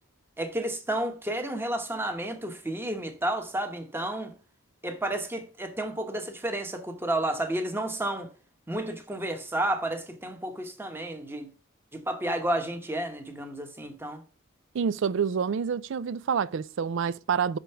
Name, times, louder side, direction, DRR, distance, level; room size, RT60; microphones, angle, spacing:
voice 1, 0.4-4.3 4.8-8.3 8.7-11.5 11.9-14.2, right 1 dB, 10° right, 1.0 m, -31 dB
voice 2, 14.7-17.6, right 6 dB, 60° right, 0.4 m, -27 dB
6.1 x 5.1 x 5.6 m
head